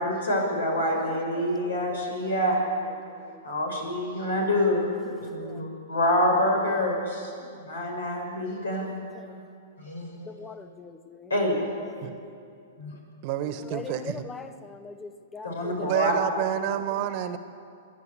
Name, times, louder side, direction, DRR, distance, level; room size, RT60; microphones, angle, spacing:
voice 1, 0.0-2.6 3.4-9.0 9.8-10.4 11.3-11.6 12.0-12.1 15.4-16.1, left 1 dB, 85° left, 1 dB, 6.3 m, -27 dB
voice 2, 0.8-2.4 3.1-3.4 5.2-5.7 9.1-9.4 10.3-11.3 11.9-12.2 13.4-16.4, left 4 dB, 15° left, 10 dB, 0.7 m, -42 dB
voice 3, 13.2-14.3 15.9-17.4, right 11 dB, 45° right, 10 dB, 1.4 m, -29 dB
27.5 x 11.0 x 8.7 m, 2.5 s
hypercardioid pair, 115°, 0 cm